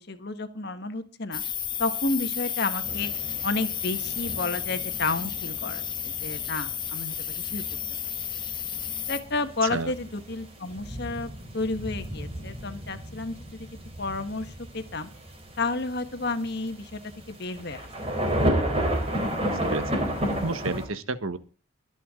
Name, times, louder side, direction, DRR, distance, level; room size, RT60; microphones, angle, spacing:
voice 1, 0.0-1.4 1.8-3.1 3.4-7.6 9.1-13.7 14.0-15.1 15.6-17.0 17.3-17.9, left 3 dB, 50° left, 8 dB, 1.6 m, -31 dB
sound 1, 1.3-9.2, left 9 dB, 20° left, 1.1 m, -32 dB
sound 2, 2.8-20.9, equal, 30° right, 4.1 m, -33 dB
voice 2, 9.6-9.9 19.7-21.4, right 3 dB, 85° right, 12 dB, 1.4 m, -32 dB
23.5 x 8.3 x 3.8 m, 0.33 s
head